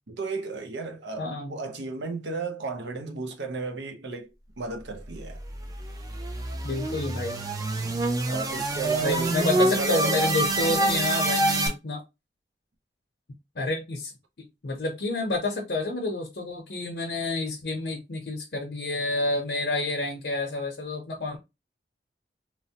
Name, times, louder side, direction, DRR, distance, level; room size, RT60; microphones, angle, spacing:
voice 1, 0.1-5.4 7.8-8.0 8.3-11.0, right 3 dB, 85° right, 0.7 m, -34 dB
voice 2, 1.2-1.6 6.6-7.4 9.0-12.0 13.5-14.1 14.4-21.4, left 2 dB, 65° left, 0.7 m, -29 dB
sound 1, 5.3-11.7, right 1 dB, 20° right, 0.4 m, -26 dB
2.9 x 2.0 x 2.8 m
head